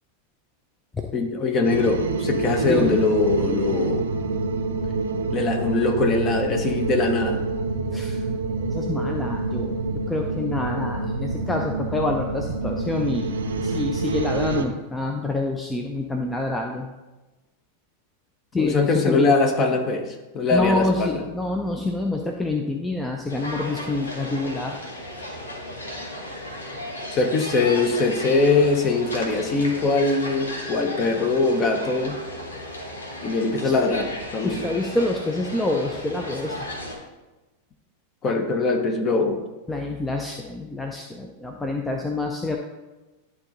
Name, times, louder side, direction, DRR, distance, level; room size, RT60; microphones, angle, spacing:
voice 1, 1.1-4.0 5.3-7.4 18.5-21.2 27.1-32.2 33.2-34.6 38.2-39.4, left 3 dB, 30° left, 4 dB, 1.0 m, -22 dB
sound 1, 1.6-14.7, right 3 dB, 65° right, 0.6 m, -27 dB
voice 2, 2.6-3.0 7.9-8.3 8.6-16.9 18.5-19.3 20.5-24.8 33.6-33.7 34.4-36.7 39.7-42.6, left 2 dB, 10° left, 2 dB, 0.6 m, -27 dB
sound 2, 23.3-37.0, left 1 dB, 75° left, 1.2 m, -35 dB
11.0 x 3.7 x 4.0 m, 1.1 s
figure-of-eight pair, 90°, 0 cm